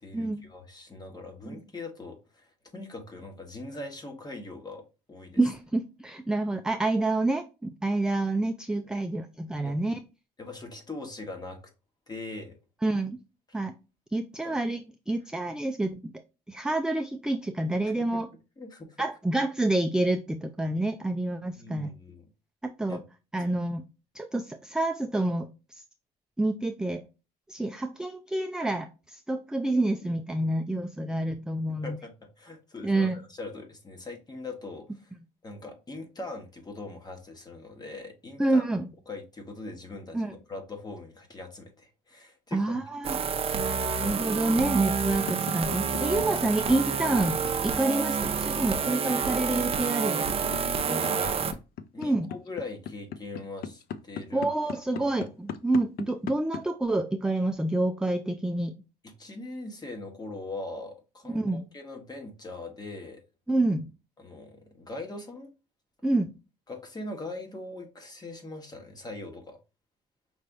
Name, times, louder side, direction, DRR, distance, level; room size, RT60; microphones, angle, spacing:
voice 1, 0.0-5.4 9.6-9.8 10.4-11.6 12.1-12.6 14.4-14.5 18.0-18.2 18.6-19.0 21.5-22.3 22.9-23.0 31.7-35.1 35.4-38.6 39.1-42.7 43.5-43.9 50.3-51.5 51.9-54.5 54.9-55.2 59.0-63.2 64.2-65.5 66.7-69.6, left 2 dB, 25° left, 1.4 m, -41 dB
voice 2, 5.4-10.0 12.8-13.2 13.5-13.7 14.1-16.1 16.5-18.3 19.0-21.9 22.6-23.0 23.3-23.8 24.1-25.8 26.4-27.0 27.5-32.0 32.8-33.2 38.4-38.9 40.1-40.3 42.5-43.2 43.8-50.3 52.0-52.3 54.3-58.7 61.3-61.6 63.5-63.9 66.0-66.3, right 2 dB, 5° right, 0.4 m, -28 dB
sound 1, 43.0-51.5, right 6 dB, 35° right, 0.7 m, -28 dB
sound 2, 44.0-56.6, left 8 dB, 65° left, 0.6 m, -38 dB
5.4 x 3.4 x 2.6 m
cardioid pair, 110°, 17 cm